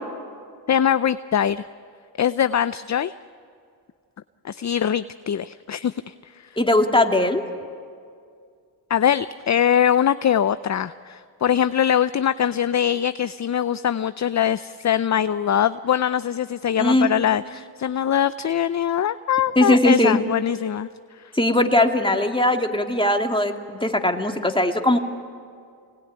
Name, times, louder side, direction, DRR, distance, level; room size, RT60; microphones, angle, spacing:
voice 1, 0.7-1.7 2.2-3.1 4.4-6.5 8.9-20.9, left 9 dB, 40° left, 14 dB, 0.7 m, -22 dB
voice 2, 6.6-7.4 16.8-17.1 19.6-20.2 21.3-25.0, left 1 dB, 10° left, 3 dB, 2.7 m, -19 dB
27.0 x 20.0 x 9.7 m, 2.2 s
supercardioid pair, 55°, 45 cm